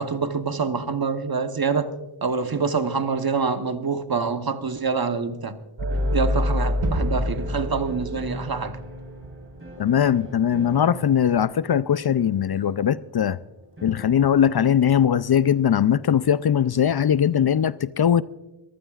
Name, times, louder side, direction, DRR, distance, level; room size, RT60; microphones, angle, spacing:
voice 1, 0.0-1.9 2.2-5.6 6.1-8.8, right 5 dB, 45° right, 1.1 m, -26 dB
sound 1, 5.8-9.8, left 1 dB, 60° right, 3.1 m, -27 dB
sound 2, 5.9-14.3, equal, 25° right, 4.4 m, -42 dB
Gunshot gunfire / Fireworks / Boom, 6.8-11.6, right 2 dB, 85° right, 1.6 m, -35 dB
voice 2, 9.8-13.4 13.8-18.2, left 9 dB, 50° left, 0.5 m, -20 dB
24.0 x 15.0 x 2.4 m
cardioid pair, 50°, 49 cm